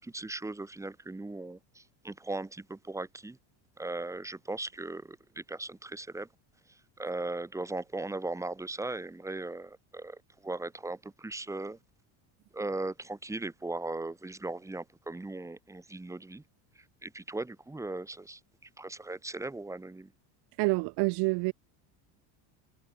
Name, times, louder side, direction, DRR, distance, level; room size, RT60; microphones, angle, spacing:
voice 1, 0.0-3.4 3.8-6.3 6.7-11.8 12.5-16.4 16.8-20.1, right 2 dB, 5° right, 4.4 m, -38 dB
voice 2, 20.6-21.5, right 26 dB, 55° right, 1.6 m, -27 dB
cardioid pair, 175°, 47 cm